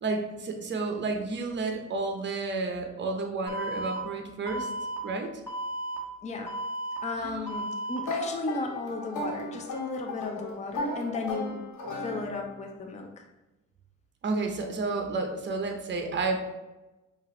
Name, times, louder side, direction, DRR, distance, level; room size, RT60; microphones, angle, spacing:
voice 1, 0.0-4.7 5.0-5.3 7.2-7.5 14.2-16.5, right 3 dB, 40° right, 4 dB, 0.8 m, -31 dB
Alarm, 3.5-4.0 4.5-5.0 5.5-6.0 6.5-7.0 7.5-8.0, right 1 dB, 10° left, 1.5 m, -34 dB
voice 2, 6.2-6.5 7.0-11.6 12.0-13.2, left 3 dB, 25° left, 2 dB, 0.5 m, -35 dB
sound 1, 8.0-12.7, left 2 dB, 75° left, 1.4 m, -35 dB
5.5 x 2.6 x 3.1 m, 1.1 s
cardioid pair, 90°, 30 cm